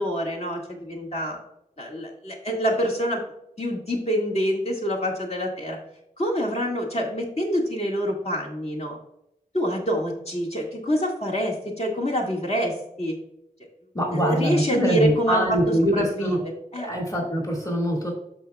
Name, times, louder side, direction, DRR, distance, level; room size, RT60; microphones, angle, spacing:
voice 1, 0.0-1.4 1.8-3.2 3.6-5.8 6.2-9.0 9.5-13.2 14.1-15.6 15.9-16.4 16.7-16.9, equal, 45° left, -1 dB, 1.9 m, -26 dB
voice 2, 13.9-16.4 16.8-18.1, equal, 25° left, -1 dB, 2.0 m, -23 dB
13.5 x 4.7 x 2.3 m, 0.79 s
wide cardioid pair, 75°, 14 cm